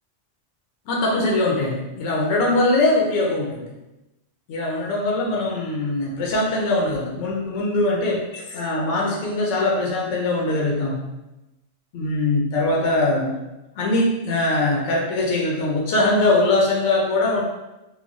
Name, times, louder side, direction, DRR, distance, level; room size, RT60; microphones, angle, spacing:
voice 1, 0.9-3.7 4.5-11.0 11.9-13.4 13.8-17.4, left 2 dB, 80° left, -3 dB, 0.9 m, -22 dB
3.0 x 2.0 x 2.5 m, 1.0 s
omnidirectional pair, 1.2 m